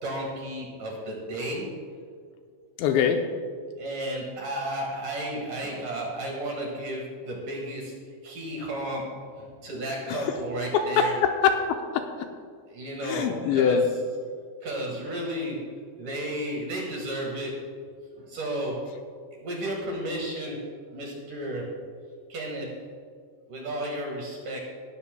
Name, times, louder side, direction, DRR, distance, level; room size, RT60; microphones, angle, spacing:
voice 1, 0.0-1.7 3.8-8.0 8.2-11.1 12.7-13.8 14.6-15.7 16.0-17.7 18.2-18.9 19.4-20.6 20.9-21.7 22.3-22.8 23.5-24.6, right 1 dB, 55° right, -1 dB, 2.5 m, -33 dB
voice 2, 2.8-3.2 10.1-10.3 10.7-12.1 13.0-13.9, left 7 dB, 85° left, 5 dB, 2.7 m, -23 dB
18.5 x 12.5 x 2.2 m, 2.1 s
omnidirectional pair, 5.4 m